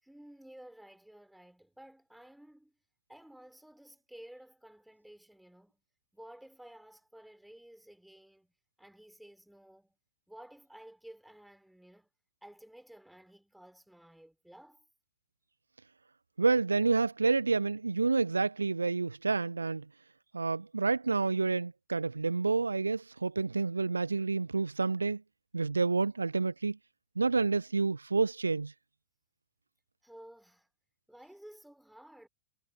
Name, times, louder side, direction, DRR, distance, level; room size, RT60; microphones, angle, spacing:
voice 1, 0.0-2.8 3.1-5.8 6.1-8.5 8.8-10.0 10.3-12.1 12.4-14.9 30.0-30.7 31.1-32.3, right 1 dB, ahead, 6.1 m, -54 dB
voice 2, 16.4-19.8 20.3-25.2 25.5-26.8 27.2-28.7, right 4 dB, 80° right, 0.8 m, -29 dB
figure-of-eight pair, 90°, 0 cm